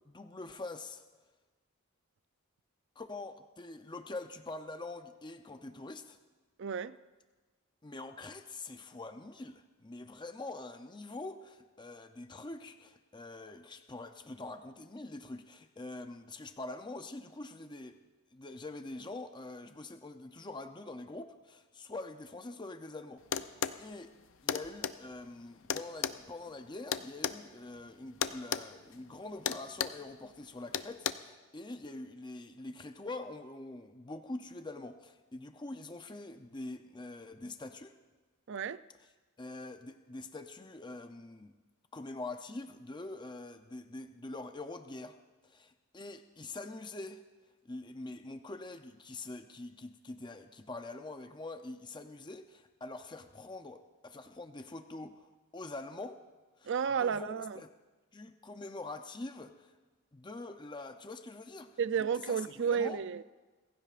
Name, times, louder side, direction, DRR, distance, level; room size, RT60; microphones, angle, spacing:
voice 1, 0.1-1.0 3.0-6.2 7.8-18.0 18.3-23.2 23.8-24.1 24.4-37.9 39.4-41.5 41.9-45.2 45.5-47.2 47.6-56.2 56.6-56.7 57.0-57.7 58.1-59.7 60.1-61.7 62.0-62.4 62.7-63.0, left 2 dB, 20° left, 0.6 m, -44 dB
voice 2, 6.6-7.0 38.5-38.8 56.7-57.6 61.8-63.2, right 7 dB, 55° right, 0.4 m, -32 dB
sound 1, 23.3-23.8 24.5-25.0 25.7-27.4 28.2-28.7 28.9-29.1 29.5-30.0 30.7-31.1, left 8 dB, 60° left, 0.6 m, -33 dB
27.0 x 15.5 x 2.5 m
head